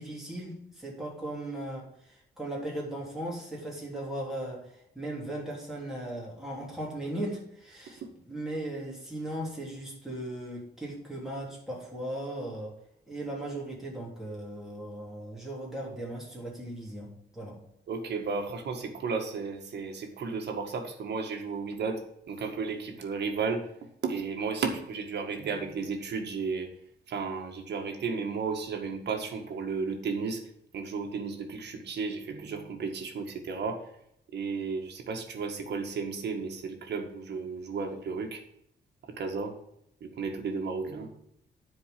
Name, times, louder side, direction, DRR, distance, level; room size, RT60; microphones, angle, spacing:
voice 1, 0.0-8.0 8.3-12.8 13.1-17.6, right 1 dB, ahead, -4 dB, 3.5 m, -37 dB
voice 2, 17.9-23.7 24.0-26.7 27.1-30.4 30.7-33.8 34.3-38.4 39.0-39.6 40.0-41.1, right 5 dB, 65° right, 4 dB, 1.8 m, -33 dB
9.7 x 4.8 x 7.6 m, 0.75 s
wide cardioid pair, 165°, 19 cm